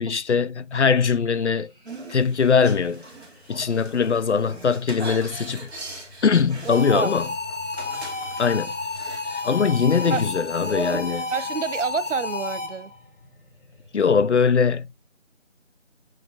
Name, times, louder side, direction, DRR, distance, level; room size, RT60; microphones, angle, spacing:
voice 1, 0.0-1.7 2.1-3.0 3.5-5.7 6.2-7.3 8.4-8.7 9.4-11.3 13.9-14.9, left 6 dB, 70° left, 0.6 m, -21 dB
sound 1, 1.0-14.5, left 3 dB, 45° left, 3.7 m, -50 dB
sound 2, 1.8-12.2, right 2 dB, 60° right, 2.3 m, -40 dB
voice 2, 6.6-7.1 10.1-10.2 11.3-12.9, right 6 dB, 80° right, 0.7 m, -28 dB
sound 3, 6.7-13.0, left 3 dB, 90° left, 1.7 m, -31 dB
6.7 x 6.4 x 2.3 m
figure-of-eight pair, 175°, 36 cm